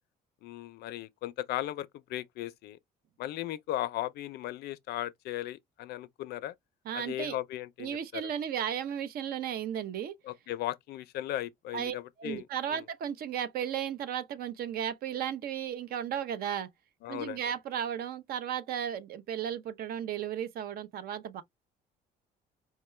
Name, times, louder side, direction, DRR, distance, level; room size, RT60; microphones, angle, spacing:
voice 1, 0.4-2.8 3.2-6.5 6.9-8.3 10.2-12.8 17.0-17.4, left 14 dB, 70° left, 0.5 m, -37 dB
voice 2, 6.9-7.4 7.8-10.1 11.7-16.7 17.1-21.4, right 9 dB, 65° right, 0.6 m, -35 dB
4.6 x 2.2 x 3.1 m
cardioid pair, 110°, 17 cm